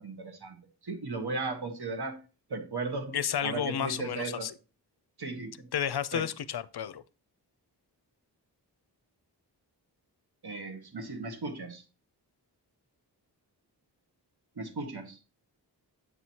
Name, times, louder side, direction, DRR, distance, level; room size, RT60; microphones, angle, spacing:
voice 1, 0.0-2.2 2.5-4.5 5.2-5.7 6.1-6.2 10.4-11.8 14.6-15.2, right 3 dB, 65° right, 1.5 m, -36 dB
voice 2, 3.1-4.5 5.7-7.0, left 9 dB, 65° left, 0.5 m, -31 dB
7.8 x 6.1 x 2.8 m
wide cardioid pair, 55°, 42 cm